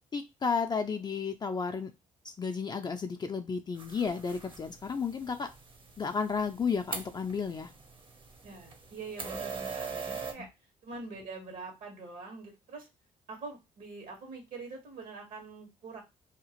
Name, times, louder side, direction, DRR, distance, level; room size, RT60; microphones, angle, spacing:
voice 1, 0.1-1.9 2.2-5.5 6.0-7.7 10.4-10.5, left 5 dB, 30° left, 6 dB, 0.4 m, -32 dB
sound 1, 3.8-10.3, right 5 dB, 35° right, 0.7 m, -42 dB
voice 2, 8.4-10.5 10.8-12.9 13.3-16.0, right 3 dB, 75° right, 2 dB, 1.4 m, -44 dB
2.8 x 2.4 x 2.9 m, 0.23 s
cardioid pair, 85°, 14 cm